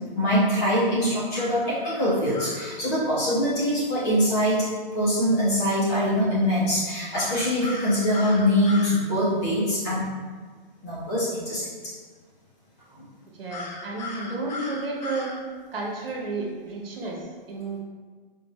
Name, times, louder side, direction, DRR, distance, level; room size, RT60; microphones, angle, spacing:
voice 1, 0.1-4.6 4.9-10.0 10.8-11.7 13.0-13.1, equal, 20° left, -9 dB, 0.8 m, -23 dB
sound 1, 1.3-2.7 7.1-9.0 13.5-15.4, left 2 dB, 50° left, 0.5 m, -37 dB
voice 2, 13.3-15.3 15.7-17.8, right 3 dB, 75° right, -2 dB, 1.2 m, -32 dB
4.3 x 2.5 x 3.1 m, 1.5 s
hypercardioid pair, 170°, 29 cm